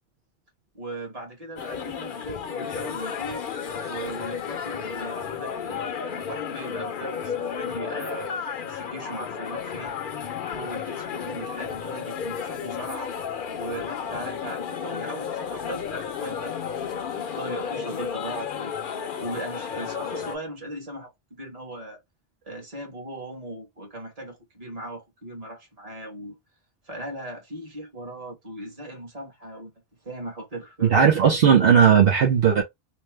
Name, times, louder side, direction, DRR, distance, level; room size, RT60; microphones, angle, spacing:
voice 1, 0.7-3.5 3.9-10.0 10.5-13.1 13.6-22.0 22.4-26.4 26.8-29.7 30.0-31.2, right 1 dB, 35° right, 1.3 m, -38 dB
sound 1, 1.6-20.4, left 7 dB, 60° left, 0.7 m, -33 dB
voice 2, 30.9-32.6, right 7 dB, 65° right, 0.9 m, -16 dB
3.0 x 2.1 x 3.2 m
omnidirectional pair, 1.1 m